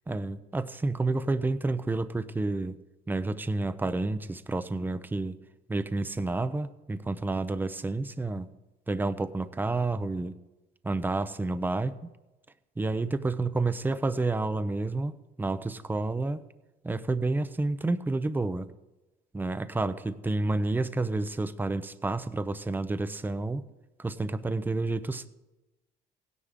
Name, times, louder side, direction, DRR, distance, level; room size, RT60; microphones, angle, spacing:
voice 1, 0.1-2.8 3.1-5.4 5.7-8.5 8.9-10.4 10.8-12.1 12.8-15.1 15.4-16.4 16.8-18.7 19.3-23.6 24.0-25.3, right 2 dB, 10° right, 13 dB, 0.6 m, -30 dB
16.5 x 10.0 x 3.7 m, 1.0 s
cardioid pair, 110°, 17 cm